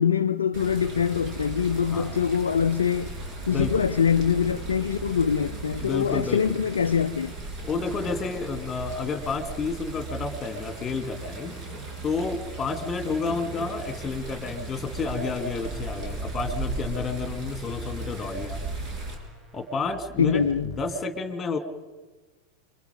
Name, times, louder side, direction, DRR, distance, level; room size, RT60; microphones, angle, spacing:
voice 1, 0.0-3.1 3.5-7.3 20.2-20.7, left 7 dB, 70° left, 0.6 m, -24 dB
Water, 0.5-19.2, right 3 dB, 35° right, 6.3 m, -36 dB
voice 2, 3.5-3.8 5.8-6.6 7.6-11.6 12.0-18.6 19.5-21.6, left 4 dB, 20° left, 2.6 m, -30 dB
sound 1, 15.5-21.0, right 2 dB, 15° right, 2.1 m, -45 dB
28.5 x 24.0 x 5.3 m
figure-of-eight pair, 90°, 0 cm